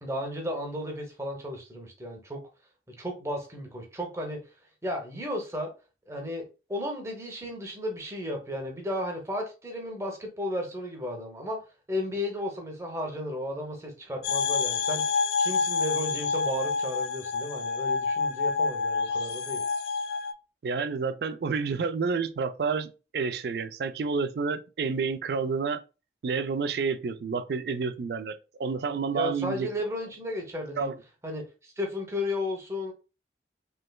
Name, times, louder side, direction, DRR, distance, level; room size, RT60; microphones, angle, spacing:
voice 1, 0.0-2.4 2.9-4.4 4.8-5.7 6.1-11.6 11.9-19.6 29.1-30.9 31.2-32.9, left 1 dB, 15° right, 0.7 m, -34 dB
sound 1, 14.2-20.3, left 4 dB, 65° left, 0.3 m, -28 dB
voice 2, 20.6-25.8 26.2-29.7 30.8-31.0, right 5 dB, 65° right, 0.4 m, -29 dB
3.2 x 3.0 x 2.2 m
head